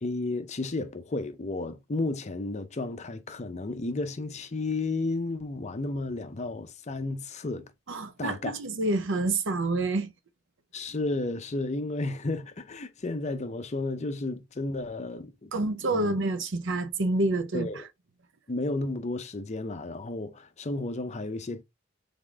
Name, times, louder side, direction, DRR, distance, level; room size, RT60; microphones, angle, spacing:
voice 1, 0.0-7.6 8.2-8.5 10.7-15.5 15.9-16.1 17.5-17.8 18.5-21.6, left 2 dB, 30° left, 0.5 m, -32 dB
voice 2, 7.9-10.1 15.5-17.7, right 2 dB, 60° right, 0.6 m, -28 dB
3.8 x 3.6 x 3.4 m
head